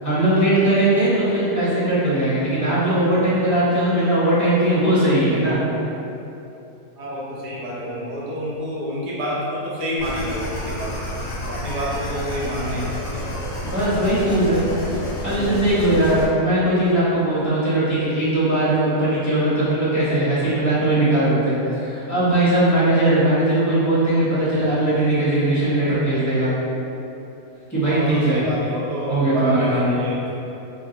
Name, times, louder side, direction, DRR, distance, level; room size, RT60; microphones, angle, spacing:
voice 1, 0.0-5.6 13.6-14.6 15.2-26.5 27.7-28.4 29.1-29.9, right 1 dB, 15° left, -11 dB, 0.6 m, -19 dB
voice 2, 7.0-10.9 11.5-13.2 27.8-30.5, equal, 85° right, -7 dB, 1.4 m, -28 dB
sound 1, 10.0-16.3, left 1 dB, 45° left, 0.8 m, -29 dB
2.8 x 2.6 x 3.8 m, 2.9 s
omnidirectional pair, 1.7 m